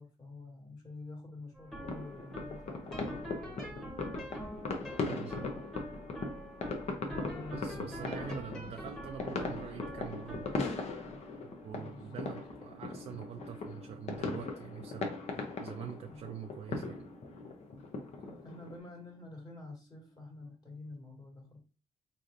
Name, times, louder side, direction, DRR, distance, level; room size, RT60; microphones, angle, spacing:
voice 1, 0.0-3.2 7.0-8.6 11.7-12.2 16.1-16.2 18.2-21.6, left 2 dB, 35° left, 0 dB, 1.7 m, -48 dB
sound 1, 1.5-18.7, equal, 5° left, 1.1 m, -48 dB
sound 2, 1.8-18.8, left 3 dB, 60° left, 0.7 m, -39 dB
voice 2, 5.0-5.5 7.5-10.6 11.4-17.1, right 8 dB, 60° right, 5 dB, 0.4 m, -45 dB
3.9 x 3.1 x 2.5 m, 0.34 s
cardioid pair, 110°, 12 cm